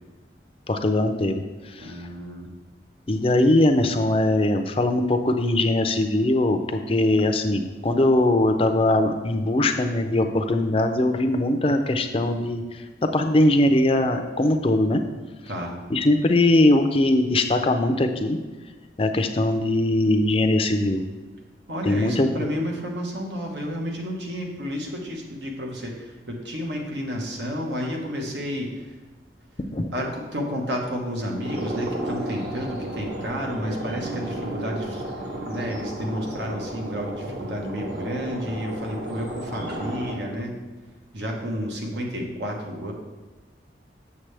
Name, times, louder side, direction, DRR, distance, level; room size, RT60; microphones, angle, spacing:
voice 1, 0.7-1.9 3.1-15.0 15.9-18.4 19.0-21.0 21.8-22.5 29.7-29.9, left 1 dB, 30° left, 6 dB, 0.4 m, -21 dB
voice 2, 1.8-2.5 15.5-15.8 21.7-28.9 29.9-35.0 35.4-40.5 41.1-42.9, equal, 80° right, 0 dB, 1.3 m, -31 dB
sound 1, 31.4-40.1, right 1 dB, 60° right, 1.4 m, -33 dB
7.4 x 6.9 x 3.3 m, 1.3 s
head